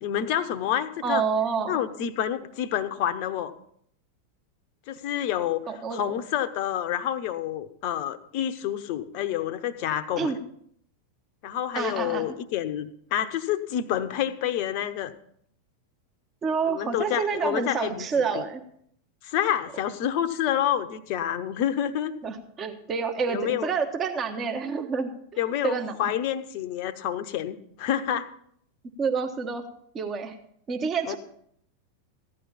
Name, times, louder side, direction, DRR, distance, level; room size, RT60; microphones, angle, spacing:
voice 1, 0.0-1.2 1.7-3.5 4.9-5.6 5.9-10.3 11.4-15.1 16.7-18.1 18.3-18.4 19.2-22.1 23.3-23.7 25.4-28.3 31.1-31.2, left 10 dB, 45° left, 11 dB, 0.9 m, -28 dB
voice 2, 1.0-1.8 5.7-6.0 10.2-10.4 11.7-12.3 16.4-18.6 22.2-26.1 29.0-29.6 29.9-30.3 30.7-31.2, right 5 dB, 25° right, 6 dB, 1.4 m, -28 dB
15.5 x 11.0 x 4.2 m, 0.67 s
figure-of-eight pair, 90°, 0 cm